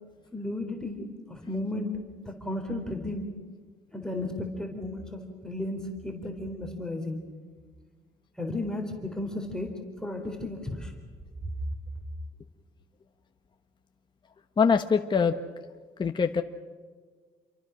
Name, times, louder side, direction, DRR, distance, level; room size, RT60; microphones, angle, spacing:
voice 1, 0.3-1.0 1.3-2.0 2.4-3.2 3.9-7.2 8.4-9.7 10.0-10.9, left 2 dB, 5° left, 2 dB, 3.9 m, -34 dB
voice 2, 14.6-15.4 16.0-16.4, left 6 dB, 25° left, 5 dB, 1.2 m, -23 dB
28.5 x 23.5 x 6.3 m, 1.5 s
cardioid pair, 110°, 17 cm